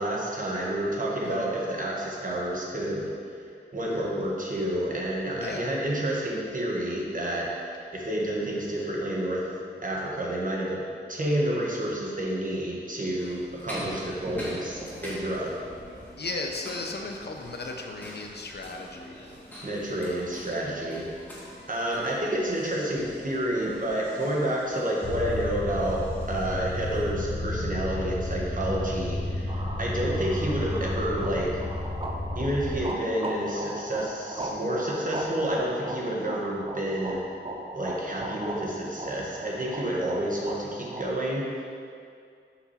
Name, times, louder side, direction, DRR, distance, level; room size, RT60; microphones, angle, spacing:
voice 1, 0.0-3.1 3.7-9.5 9.8-10.8 11.1-15.5 19.6-21.1 21.7-31.5 32.3-37.2 37.7-41.6, right 1 dB, 45° right, -3 dB, 1.3 m, -29 dB
voice 2, 1.2-1.5 5.4-5.7 16.2-19.3 20.0-20.2, left 3 dB, 60° left, 2 dB, 0.7 m, -36 dB
sound 1, 13.2-27.1, equal, 10° left, 1.8 m, -44 dB
sound 2, 25.0-32.9, left 1 dB, 25° left, 0.9 m, -32 dB
sound 3, 29.5-41.0, right 1 dB, 30° right, 0.6 m, -38 dB
5.9 x 5.8 x 4.2 m, 2.3 s
wide cardioid pair, 85°, 19 cm